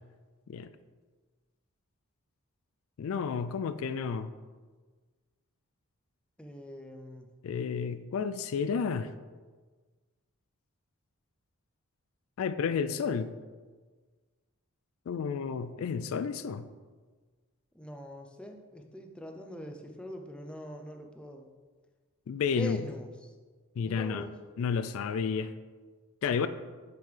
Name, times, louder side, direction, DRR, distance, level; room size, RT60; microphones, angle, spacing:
voice 1, 3.0-4.3 7.4-9.1 12.4-13.3 15.1-16.7 22.3-22.8 23.8-24.2 24.6-25.5 26.2-26.5, left 6 dB, 70° left, 12 dB, 0.3 m, -31 dB
voice 2, 6.4-7.3 17.7-21.5 22.5-23.3 23.8-24.3 26.3-26.5, equal, 5° left, 3 dB, 0.5 m, -43 dB
6.7 x 6.4 x 3.3 m, 1.4 s
head